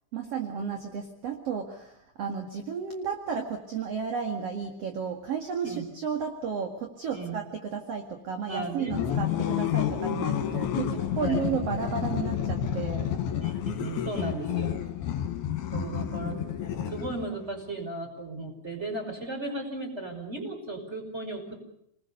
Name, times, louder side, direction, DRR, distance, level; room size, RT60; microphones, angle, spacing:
voice 1, 0.1-13.1 15.8-16.0, right 6 dB, 45° right, 4 dB, 2.5 m, -33 dB
voice 2, 7.1-7.4 8.5-9.0 11.2-11.5 13.4-14.8 15.7-21.6, right 2 dB, 15° right, 3 dB, 5.6 m, -36 dB
sound 1, 8.9-17.4, left 10 dB, 70° left, 3.7 m, -30 dB
29.5 x 21.0 x 6.8 m, 0.77 s
omnidirectional pair, 4.9 m